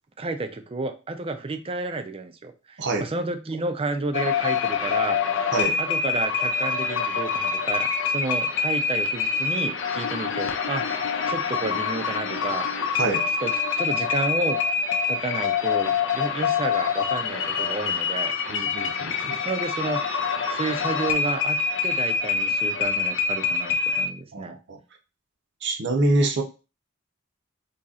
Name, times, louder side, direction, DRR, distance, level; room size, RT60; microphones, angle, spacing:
voice 1, 0.2-5.2 5.8-11.0 11.3-12.7 13.4-13.5 13.8-14.6 15.1-18.3 19.4-20.0 20.5-24.6, right 3 dB, 30° right, 7 dB, 0.5 m, -31 dB
sound 1, 4.1-24.1, left 6 dB, 65° left, 0.6 m, -25 dB
voice 2, 18.5-19.4 24.3-24.8 25.6-26.4, right 2 dB, 60° right, 3 dB, 0.7 m, -25 dB
4.1 x 2.9 x 2.4 m, 0.31 s
head